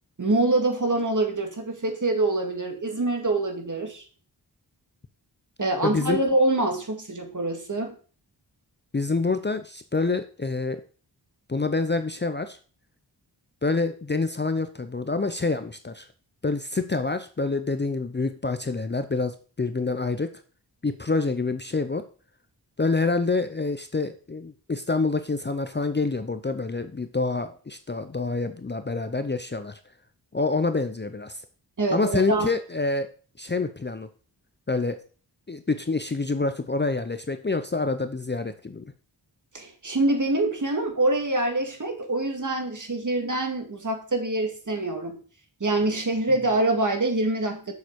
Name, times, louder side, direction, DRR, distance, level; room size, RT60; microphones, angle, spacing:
voice 1, 0.2-4.0 5.6-7.9 31.8-32.5 39.5-45.2 45.6-47.7, right 2 dB, 45° right, 4 dB, 2.0 m, -25 dB
voice 2, 5.8-6.2 8.9-10.8 11.5-12.6 13.6-16.1 16.4-20.3 20.8-22.0 22.8-29.8 30.3-31.4 31.9-33.1 33.4-34.1 34.7-35.0 35.5-38.9, left 3 dB, 25° left, 9 dB, 0.6 m, -27 dB
7.2 x 6.4 x 4.7 m, 0.39 s
wide cardioid pair, 75°, 42 cm